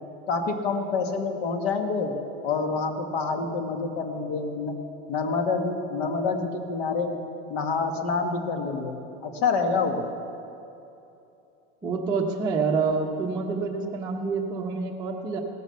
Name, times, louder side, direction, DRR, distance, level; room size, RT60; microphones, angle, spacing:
voice 1, 0.3-2.2 2.4-4.7 5.1-7.2 7.5-10.1, left 4 dB, 65° left, 5 dB, 1.8 m, -27 dB
voice 2, 11.8-15.4, right 4 dB, 15° right, -3 dB, 1.0 m, -27 dB
17.0 x 9.6 x 7.0 m, 2.8 s
supercardioid pair, 165°, 33 cm